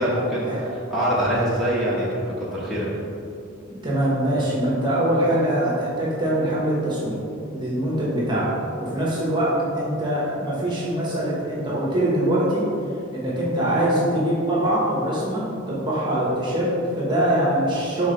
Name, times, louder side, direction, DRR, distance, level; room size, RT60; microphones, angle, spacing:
voice 1, 0.0-2.9, equal, ahead, -9 dB, 1.1 m, -24 dB
voice 2, 3.8-7.2 7.5-8.5 8.8-12.7 13.1-18.1, right 1 dB, 25° right, -6 dB, 1.2 m, -23 dB
6.3 x 3.8 x 5.1 m, 2.5 s
head